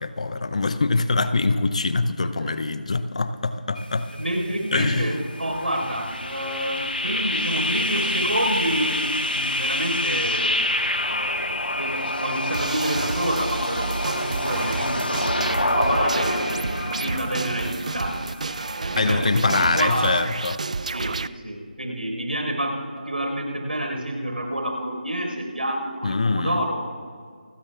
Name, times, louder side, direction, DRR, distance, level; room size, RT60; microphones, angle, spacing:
voice 1, 0.0-4.1 4.7-5.2 19.0-20.6 26.0-26.6, left 3 dB, 45° left, 12 dB, 0.7 m, -23 dB
sound 1, 3.8-20.2, left 1 dB, 75° left, 1.4 m, -28 dB
voice 2, 4.2-10.6 11.0-16.5 16.9-18.2 18.8-20.2 20.8-26.9, right 1 dB, 75° right, 2 dB, 4.8 m, -28 dB
sound 2, 12.5-21.3, right 4 dB, 45° right, 0.4 m, -30 dB
28.5 x 15.0 x 2.5 m, 2.1 s
figure-of-eight pair, 160°, 5 cm